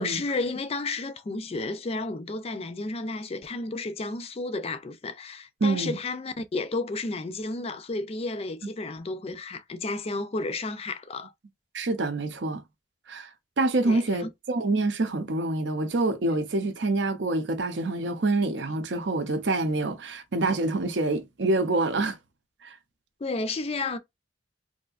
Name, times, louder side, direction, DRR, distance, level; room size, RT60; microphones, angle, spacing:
voice 1, 0.0-11.3 13.9-14.3 23.2-24.0, left 3 dB, 35° left, 0.4 m, -32 dB
voice 2, 5.6-6.0 11.7-12.6 13.1-13.3 13.6-22.2 22.6-22.7, right 2 dB, 75° right, 0.7 m, -26 dB
3.3 x 2.7 x 2.4 m
head